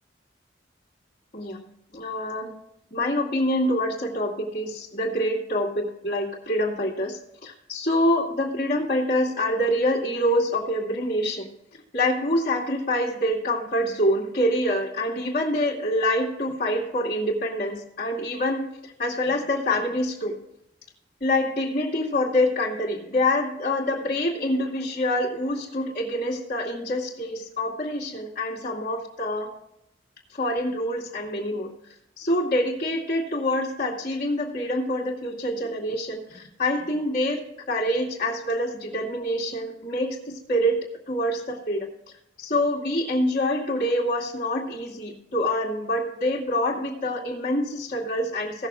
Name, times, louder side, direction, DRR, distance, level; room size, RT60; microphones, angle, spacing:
voice 1, 1.9-2.5 2.9-11.5 11.9-18.7 19.0-20.4 21.2-29.5 30.4-31.7 32.2-37.4 37.7-40.8 41.1-41.9 42.4-48.7, left 1 dB, 50° left, -4 dB, 2.3 m, -26 dB
17.0 x 6.9 x 3.7 m, 0.80 s
head